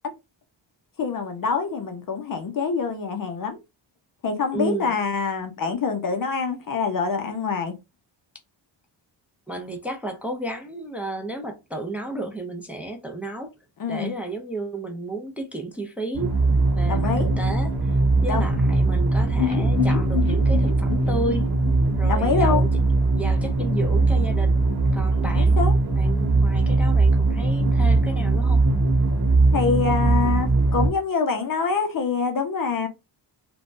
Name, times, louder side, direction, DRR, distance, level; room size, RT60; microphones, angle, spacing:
voice 1, 1.0-3.6 4.2-7.7 13.8-14.1 16.9-17.3 18.3-18.5 22.1-22.7 25.3-25.7 29.5-32.9, left 5 dB, 50° left, 0.6 m, -25 dB
voice 2, 4.5-4.9 9.5-13.5 13.9-16.3 16.8-17.9 18.2-21.5 22.0-22.7 23.1-24.6 24.9-25.6 26.0-28.6, right 2 dB, 5° right, 0.4 m, -32 dB
sound 1, 16.1-30.9, right 2 dB, 55° right, 1.0 m, -20 dB
sound 2, 19.4-23.2 23.5-23.6 23.9-24.0, left 10 dB, 30° left, 1.9 m, -30 dB
3.3 x 2.1 x 2.4 m
wide cardioid pair, 155°, 45 cm